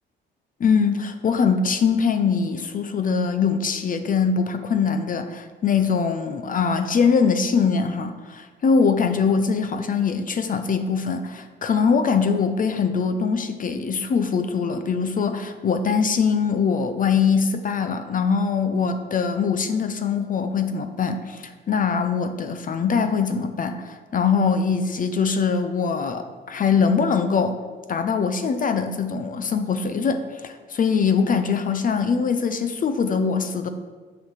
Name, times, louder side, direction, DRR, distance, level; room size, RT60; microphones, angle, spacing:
voice 1, 0.6-27.6 27.9-33.7, left 5 dB, 45° left, 8 dB, 0.6 m, -22 dB
6.0 x 5.7 x 4.8 m, 1.4 s
cardioid pair, 90°, 20 cm